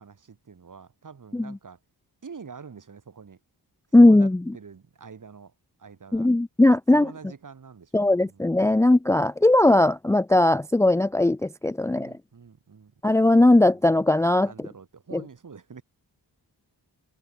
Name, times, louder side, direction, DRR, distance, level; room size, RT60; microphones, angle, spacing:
voice 1, 0.0-1.8 2.2-3.4 4.0-5.5 5.8-6.3 6.9-8.4 11.8-13.5 14.4-15.8, right 5 dB, 50° right, 7.0 m, -46 dB
voice 2, 3.9-4.4 6.1-7.1 7.9-12.1 13.0-14.5 15.1-15.2, left 2 dB, 5° left, 0.5 m, -19 dB
wide cardioid pair, 130°, 39 cm